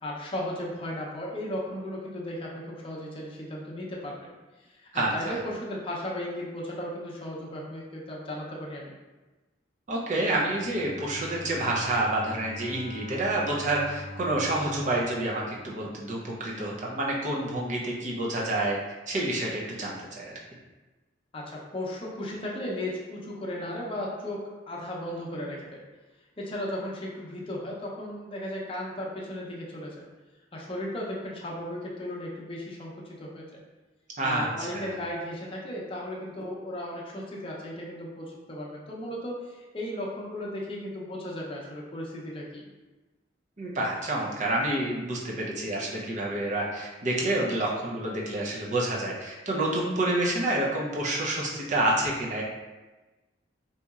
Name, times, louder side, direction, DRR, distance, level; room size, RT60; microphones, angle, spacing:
voice 1, 0.0-4.3 4.7-9.0 21.3-25.8 26.4-30.0 30.5-33.6 34.2-42.6, left 1 dB, 30° left, -3 dB, 0.6 m, -35 dB
voice 2, 4.9-5.4 9.9-18.8 19.1-20.3 34.2-34.5 34.7-34.9 43.6-52.4, right 1 dB, 40° right, -3 dB, 0.6 m, -28 dB
Bowed string instrument, 10.3-16.2, equal, ahead, 0.9 m, -43 dB
4.1 x 2.8 x 2.4 m, 1.2 s
head